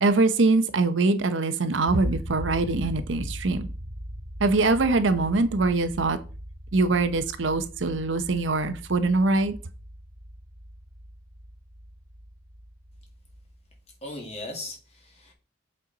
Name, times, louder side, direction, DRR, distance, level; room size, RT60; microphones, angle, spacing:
voice 1, 0.0-3.7 4.4-6.2 6.7-9.5, right 3 dB, 75° right, 0.7 m, -23 dB
sound 1, 1.9-13.8, equal, 60° right, 1.4 m, -40 dB
voice 2, 14.0-15.3, left 1 dB, 35° left, 2.0 m, -38 dB
7.6 x 4.4 x 3.9 m
head